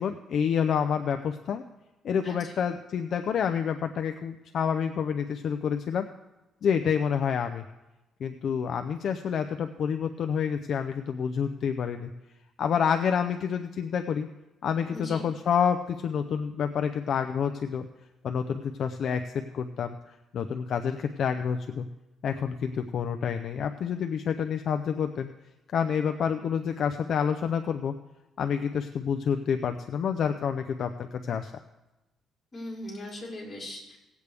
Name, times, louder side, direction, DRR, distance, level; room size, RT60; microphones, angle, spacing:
voice 1, 0.0-1.6 2.0-6.1 6.6-7.6 8.2-12.1 12.6-14.3 14.6-17.9 18.2-20.0 20.3-21.9 22.2-25.3 25.7-28.0 28.4-31.5, left 7 dB, 55° left, 7 dB, 0.5 m, -28 dB
voice 2, 2.2-2.5 14.9-15.2 32.5-34.0, left 1 dB, 25° left, -5 dB, 4.1 m, -39 dB
18.0 x 8.2 x 3.4 m, 1.0 s
cardioid pair, 145°, 0 cm